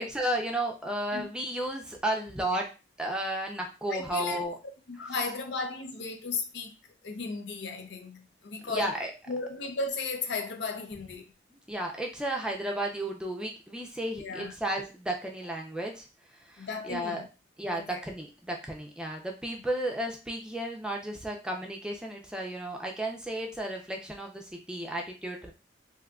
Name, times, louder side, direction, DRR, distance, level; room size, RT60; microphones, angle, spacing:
voice 1, 0.0-2.7 3.0-4.5 8.6-9.1 11.5-16.1 16.3-17.2 17.6-25.5, right 1 dB, 5° right, 0.5 m, -33 dB
voice 2, 3.9-4.4 4.9-6.8 7.0-8.9 9.3-11.3 14.2-14.5 16.6-17.3 17.7-18.0, left 4 dB, 75° left, 0.6 m, -35 dB
3.6 x 2.7 x 2.3 m
head